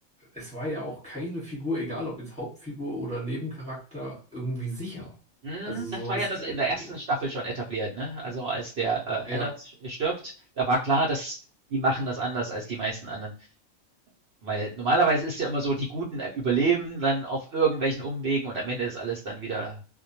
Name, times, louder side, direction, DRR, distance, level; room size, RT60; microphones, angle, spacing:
voice 1, 0.3-5.1 5.6-6.9 9.3-9.5, equal, 5° left, -3 dB, 0.9 m, -34 dB
voice 2, 5.4-9.5 9.8-11.4 11.7-13.3 14.4-19.8, right 3 dB, 60° right, -4 dB, 0.8 m, -28 dB
2.2 x 2.1 x 2.7 m, 0.36 s
omnidirectional pair, 1.4 m